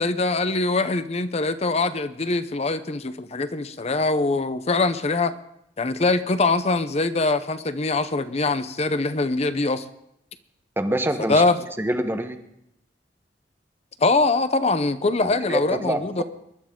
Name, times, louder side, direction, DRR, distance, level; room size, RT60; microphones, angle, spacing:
voice 1, 0.0-5.3 5.8-9.8 11.3-11.6 14.0-16.2, left 3 dB, 35° left, 12 dB, 0.7 m, -23 dB
voice 2, 10.8-11.4 11.8-12.4 15.2-16.2, right 1 dB, 15° right, 7 dB, 1.1 m, -26 dB
23.5 x 11.5 x 3.8 m, 0.79 s
head